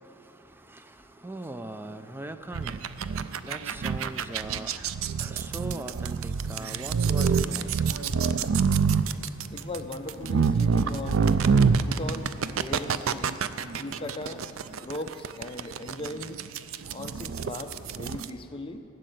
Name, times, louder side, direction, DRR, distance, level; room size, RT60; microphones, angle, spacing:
voice 1, 0.0-8.1 9.1-9.2, right 2 dB, 10° right, 9 dB, 0.5 m, -41 dB
sound 1, 2.5-18.3, right 5 dB, 70° right, 0.4 m, -26 dB
voice 2, 9.5-11.4 11.8-13.3 13.8-16.4 16.9-18.8, left 2 dB, 25° left, 6 dB, 0.7 m, -38 dB
15.0 x 6.6 x 9.3 m, 2.8 s
head